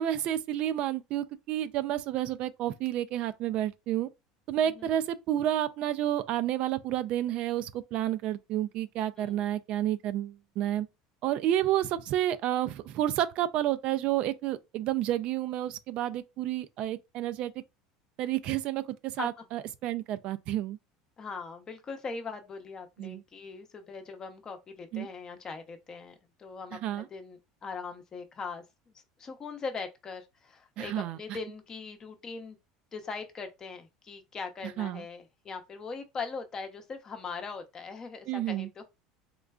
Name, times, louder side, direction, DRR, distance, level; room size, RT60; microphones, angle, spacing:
voice 1, 0.0-4.1 4.5-10.9 11.2-17.5 18.2-20.8 23.0-23.2 24.9-25.1 26.8-27.0 30.8-31.2 34.8-35.0 38.3-38.7, right 12 dB, 55° right, 0.3 m, -30 dB
voice 2, 21.2-32.6 32.9-38.8, left 4 dB, 30° left, 0.7 m, -41 dB
3.7 x 2.2 x 2.3 m
supercardioid pair, 110°, 2 cm